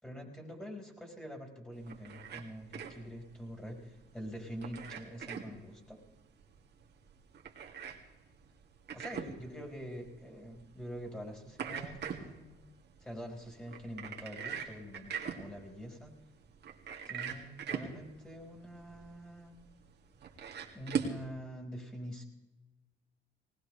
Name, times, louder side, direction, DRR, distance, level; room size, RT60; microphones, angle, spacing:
voice 1, 0.0-6.0 8.9-12.6 13.0-16.1 17.1-19.6 20.7-22.2, equal, 5° left, 2 dB, 5.0 m, -45 dB
sound 1, 1.7-21.2, right 7 dB, 60° right, 2.3 m, -43 dB
20.0 x 19.5 x 3.3 m, 1.1 s
cardioid pair, 90°, 20 cm